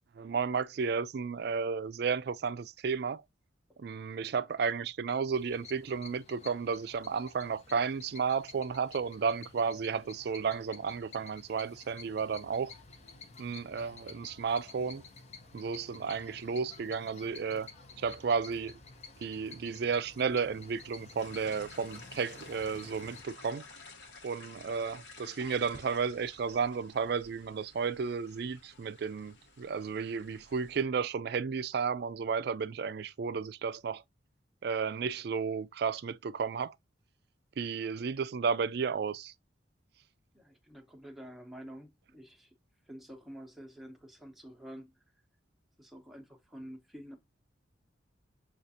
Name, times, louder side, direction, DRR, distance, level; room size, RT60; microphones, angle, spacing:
voice 1, 0.2-3.2 3.8-12.7 13.4-15.0 15.5-17.7 18.0-18.8 19.2-23.6 24.2-34.0 34.6-36.7 37.6-39.3, right 5 dB, 55° right, 0.3 m, -33 dB
sound 1, 5.3-23.2, left 4 dB, 35° left, 0.7 m, -52 dB
sound 2, 21.2-30.8, left 3 dB, 65° left, 1.1 m, -53 dB
voice 2, 40.3-42.5 42.9-44.9 45.8-47.2, equal, ahead, 0.8 m, -48 dB
6.3 x 2.4 x 2.7 m
head